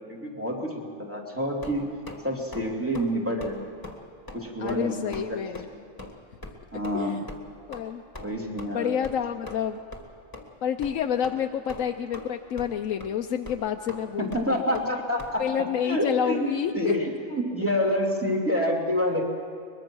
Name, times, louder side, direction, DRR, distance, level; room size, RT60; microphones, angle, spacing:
voice 1, 0.1-1.8 2.2-3.6 4.3-5.4 5.7-5.8 6.7-7.2 8.2-8.9 14.2-15.4 15.8-16.5 16.7-19.2, equal, 10° right, -1 dB, 2.9 m, -28 dB
sound 1, 1.6-2.2 2.5-2.7 2.9-3.1 3.4-3.6 3.8-4.0 4.3-4.4 4.7-4.8 5.1-5.3 5.5-5.7 6.0-6.1 6.4-6.5 6.8-7.0 7.3-7.4 7.7-7.8 8.1-8.3 8.6-8.7 9.0-9.2 9.5-9.6 9.9-10.0 10.3-10.4 10.8-10.9 11.2-11.4 11.7-12.3 12.6-12.7 13.0-13.1 13.5-13.6 13.9-14.0 14.3-14.4 14.7-14.9 15.2-15.3, left 1 dB, 15° left, 2.0 m, -40 dB
voice 2, 4.6-5.7 6.9-7.3 7.7-8.0 8.7-9.8 10.6-14.6 15.4-16.9, left 8 dB, 90° left, 5 dB, 1.1 m, -29 dB
23.0 x 21.5 x 6.2 m, 2.2 s
omnidirectional pair, 1.3 m